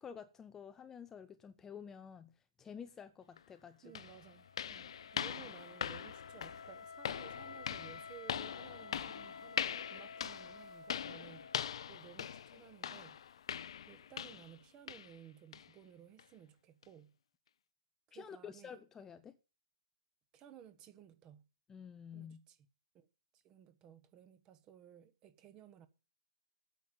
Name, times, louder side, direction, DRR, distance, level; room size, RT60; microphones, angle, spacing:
voice 1, 0.0-2.3 2.6-3.9 18.1-19.4 21.7-22.4, left 7 dB, 15° left, 0.6 m, -50 dB
sound 1, 3.4-3.5 3.9-14.6 14.9-15.2 15.5-15.7 16.2-16.3 16.8-16.9, left 9 dB, 60° left, 0.6 m, -42 dB
voice 2, 3.8-11.5 11.8-13.4 13.9-17.1 18.1-18.8 20.3-21.5 22.1-22.6 22.9-23.1 23.3-25.9, right 9 dB, 25° right, 1.3 m, -57 dB
Wind instrument woodwind instrument, 3.9-11.9, left 5 dB, 85° left, 1.8 m, -52 dB
9.2 x 7.4 x 8.9 m
hypercardioid pair, 140°, 3 cm